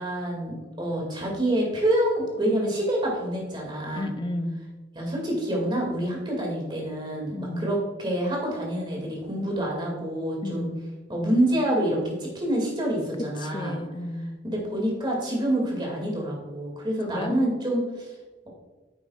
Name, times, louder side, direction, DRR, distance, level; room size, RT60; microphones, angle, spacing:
voice 1, 0.0-4.1 4.9-10.7 11.1-13.8 14.4-18.1, right 1 dB, 25° right, -1 dB, 2.4 m, -27 dB
voice 2, 3.9-4.6 7.3-7.7 10.4-10.9 13.4-14.4 17.1-17.4, left 1 dB, 25° left, 8 dB, 0.5 m, -32 dB
9.8 x 7.6 x 2.5 m, 1.2 s
head